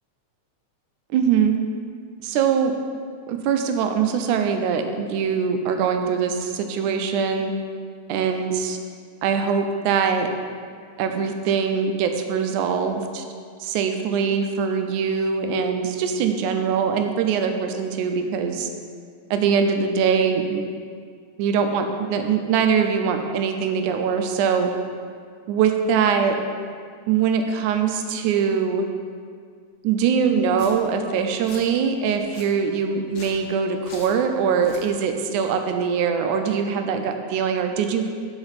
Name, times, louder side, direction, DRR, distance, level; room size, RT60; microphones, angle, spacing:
voice 1, 1.1-1.6 2.2-2.7 3.3-7.5 8.1-8.8 9.2-10.3 11.0-13.2 13.6-18.7 19.3-20.6 21.4-24.7 25.5-26.4 27.1-28.9 29.8-38.1, right 6 dB, 90° right, 6 dB, 2.1 m, -22 dB
Domestic sounds home sounds, 30.2-30.3 30.6-30.7 31.2-31.6 32.1-32.5 33.1-33.4 33.9-34.1 34.5-34.8, left 3 dB, 55° left, 1.4 m, -42 dB
11.0 x 6.1 x 4.1 m, 2.1 s
omnidirectional pair, 3.5 m